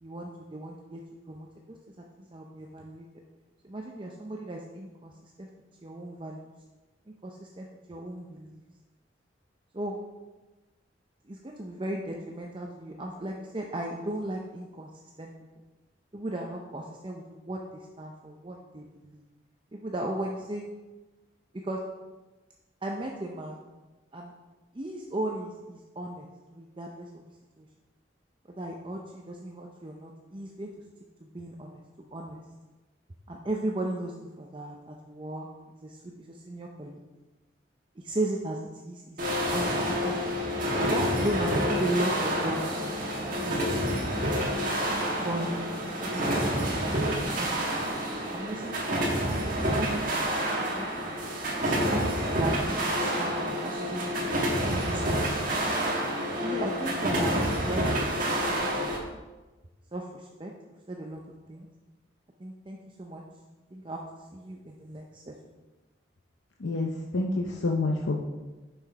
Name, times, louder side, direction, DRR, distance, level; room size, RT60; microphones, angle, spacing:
voice 1, 0.0-1.0 1.3-1.5 2.3-3.0 3.6-5.5 5.8-6.4 7.2-8.6 9.7-10.0 11.3-14.9 15.2-15.3 16.1-19.2 19.7-20.6 21.6-21.8 22.8-23.6 24.1-24.3 24.7-26.3 26.5-27.1 27.6-27.7 28.6-30.7 31.2-31.8 32.1-32.4 33.3-35.5 35.8-37.0 38.0-40.1 40.9-43.0 43.4-44.1 45.1-45.6 46.0-47.6 48.3-51.3 51.9-55.2 56.4-58.0 58.8-58.9 59.9-60.5 60.9-61.2 61.5-61.7 62.4-63.2 63.7-64.0 64.3-65.3, right 1 dB, 25° right, 0 dB, 0.6 m, -36 dB
sound 1, 39.2-59.0, equal, 45° right, 1.5 m, -28 dB
voice 2, 66.6-68.2, left 2 dB, 80° left, 0 dB, 0.7 m, -28 dB
6.9 x 5.9 x 4.8 m, 1.2 s
head